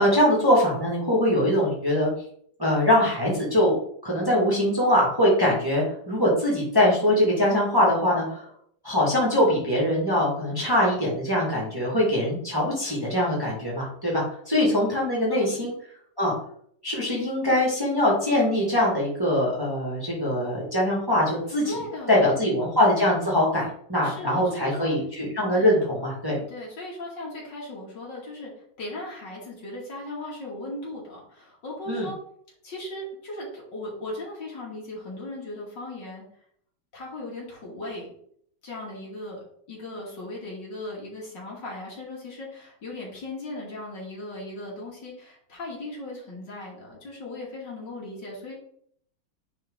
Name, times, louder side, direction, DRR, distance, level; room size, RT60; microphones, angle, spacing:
voice 1, 0.0-2.1 2.6-8.5 8.8-15.7 16.2-16.3 16.8-21.7 22.1-26.4 31.9-32.1, left 1 dB, 10° right, -5 dB, 2.1 m, -22 dB
voice 2, 15.3-15.6 21.6-22.4 24.0-24.9 25.5-25.8 26.5-28.5 28.8-32.1 32.6-36.2 36.9-38.1 38.6-39.4 39.7-48.6, left 1 dB, 55° left, -4 dB, 3.2 m, -37 dB
9.8 x 4.2 x 3.9 m, 0.65 s
omnidirectional pair, 2.3 m